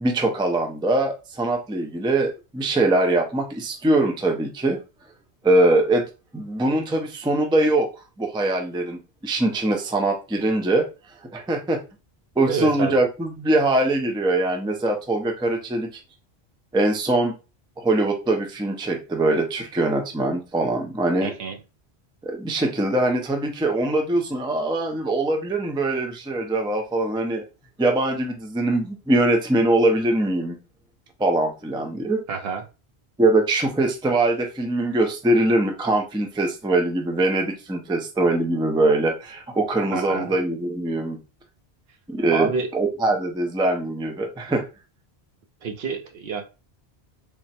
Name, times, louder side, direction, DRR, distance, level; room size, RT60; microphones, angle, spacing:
voice 1, 0.0-4.8 5.4-7.9 8.2-10.9 11.3-11.8 12.4-15.9 16.7-17.3 17.8-21.3 22.2-27.4 27.8-30.6 31.2-32.2 33.2-41.2 42.1-44.7, right 2 dB, 5° right, 3 dB, 0.4 m, -22 dB
voice 2, 12.5-13.0 21.2-21.6 32.3-32.6 39.9-40.3 42.3-42.7 45.6-46.4, right 5 dB, 70° right, 5 dB, 0.9 m, -28 dB
3.7 x 2.1 x 4.2 m, 0.30 s
omnidirectional pair, 1.1 m